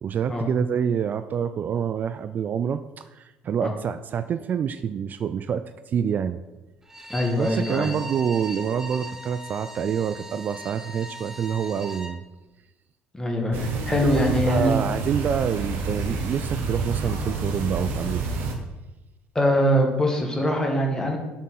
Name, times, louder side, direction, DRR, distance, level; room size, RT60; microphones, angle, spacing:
voice 1, 0.0-6.4 7.4-12.2 14.1-18.3, right 7 dB, 40° right, 11 dB, 0.4 m, -27 dB
Bowed string instrument, 6.8-12.2, right 1 dB, 10° right, 1.3 m, -39 dB
voice 2, 7.1-7.9 13.1-14.8 19.4-21.2, equal, 15° left, 1 dB, 2.0 m, -23 dB
sound 1, 13.5-18.6, right 3 dB, 55° right, 1.3 m, -29 dB
7.2 x 6.3 x 5.6 m, 1.1 s
figure-of-eight pair, 55°, 5 cm